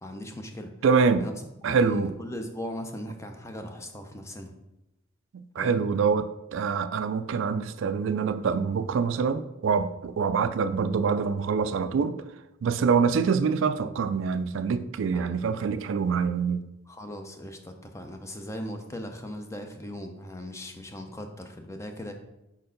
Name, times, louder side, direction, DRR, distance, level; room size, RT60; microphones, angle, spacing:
voice 1, 0.0-0.7 1.2-1.3 1.6-4.5 5.6-5.8 15.1-15.4 16.9-22.1, equal, 15° left, 0.5 m, -38 dB
voice 2, 0.8-1.3 1.6-2.1 5.3-12.2 12.6-16.7, right 5 dB, 75° right, 0.3 m, -25 dB
4.4 x 4.3 x 5.1 m
head